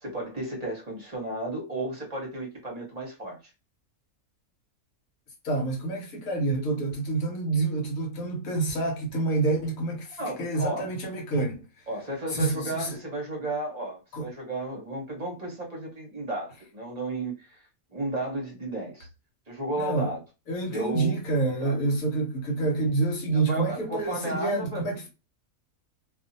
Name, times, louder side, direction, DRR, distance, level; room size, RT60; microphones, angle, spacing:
voice 1, 0.0-3.4 10.2-10.9 11.9-17.6 17.9-19.1 19.5-20.2 20.7-21.2 21.6-21.8 23.3-25.1, right 2 dB, 35° right, 0.8 m, -33 dB
voice 2, 5.4-11.5 12.3-13.0 14.1-14.3 19.8-20.1 20.5-25.0, right 3 dB, 65° left, 1.3 m, -28 dB
2.6 x 2.5 x 2.6 m
omnidirectional pair, 1.6 m